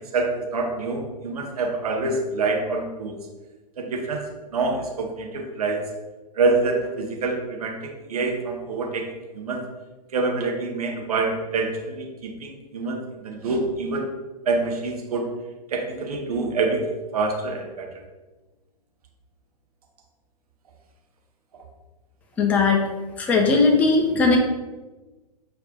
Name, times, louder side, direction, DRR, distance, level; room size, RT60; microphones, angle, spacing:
voice 1, 0.1-3.1 3.8-4.2 4.5-5.8 6.4-7.8 8.1-9.0 9.3-9.6 10.1-13.0 13.2-14.0 14.5-15.3 15.7-16.8 17.1-17.9, right 3 dB, 60° right, 1 dB, 0.9 m, -26 dB
voice 2, 22.4-22.8 23.2-24.4, left 4 dB, 5° left, 0 dB, 0.3 m, -18 dB
4.3 x 2.5 x 3.8 m, 1.2 s
figure-of-eight pair, 110°, 21 cm